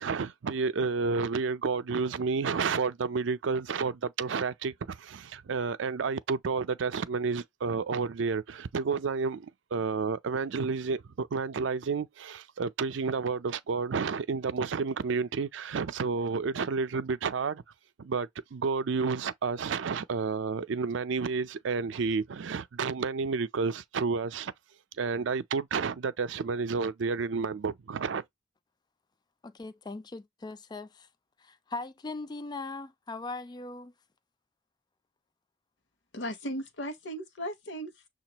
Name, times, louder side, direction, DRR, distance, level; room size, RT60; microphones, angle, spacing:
voice 1, 0.0-17.6 18.0-24.5 25.0-28.2, right 5 dB, 75° right, 0.4 m, -30 dB
voice 2, 29.4-31.1 31.4-33.9, left 3 dB, 20° left, 0.3 m, -40 dB
voice 3, 36.1-38.1, equal, 65° left, 0.9 m, -37 dB
6.6 x 2.4 x 2.9 m
head